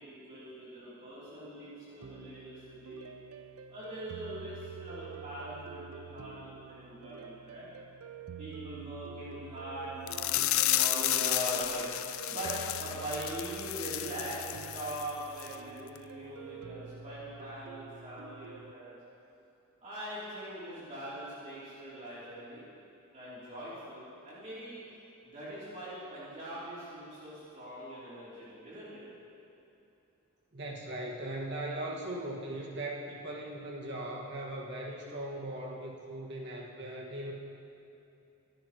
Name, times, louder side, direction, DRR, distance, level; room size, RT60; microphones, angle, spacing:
voice 1, 0.0-3.1 3.7-7.7 8.4-19.0 19.8-22.7 23.1-24.8 25.2-29.0, right 1 dB, 35° right, -11 dB, 3.4 m, -42 dB
sound 1, 2.0-18.7, right 7 dB, 90° right, 0.5 m, -48 dB
sound 2, 10.1-15.1 15.4-15.5 15.9-16.0, left 14 dB, 70° left, 0.5 m, -32 dB
voice 2, 30.5-37.3, right 1 dB, 55° right, -2 dB, 2.0 m, -39 dB
25.5 x 11.0 x 3.2 m, 2.9 s
head